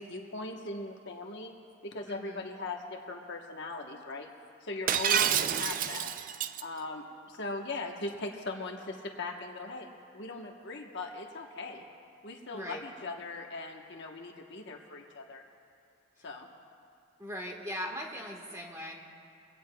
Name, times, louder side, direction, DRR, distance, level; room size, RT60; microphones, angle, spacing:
voice 1, 0.0-1.5 1.8-4.3 4.6-6.1 6.6-9.9 10.1-11.9 12.2-15.4 16.2-16.5, left 2 dB, 50° left, 1 dB, 1.1 m, -39 dB
voice 2, 2.0-2.5 4.8-5.2 12.5-12.8 16.2-16.3 17.2-19.0, equal, 15° right, 0 dB, 1.4 m, -40 dB
Shatter, 4.9-6.6, right 9 dB, 35° right, 0.3 m, -28 dB
24.0 x 17.0 x 2.3 m, 2.5 s
head